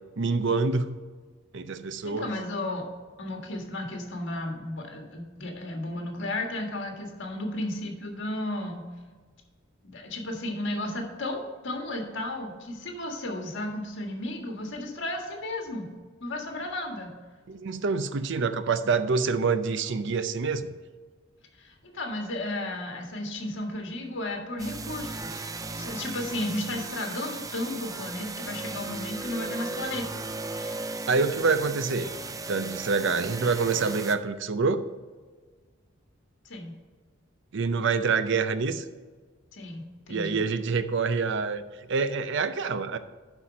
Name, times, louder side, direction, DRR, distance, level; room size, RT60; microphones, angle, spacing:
voice 1, 0.2-1.0 1.5-2.3 17.5-20.7 31.1-32.1 32.5-34.8 37.5-38.8 40.1-41.6 41.9-43.0, right 4 dB, 65° right, 11 dB, 0.6 m, -26 dB
voice 2, 2.0-2.9 3.2-8.9 9.8-15.9 16.2-17.1 21.6-30.1 30.5-30.9 36.5-36.8 39.5-40.4, left 1 dB, 65° left, 2 dB, 1.7 m, -34 dB
sound 1, 24.6-34.1, right 3 dB, 15° right, 0.4 m, -36 dB
11.0 x 4.5 x 5.1 m, 1.5 s
head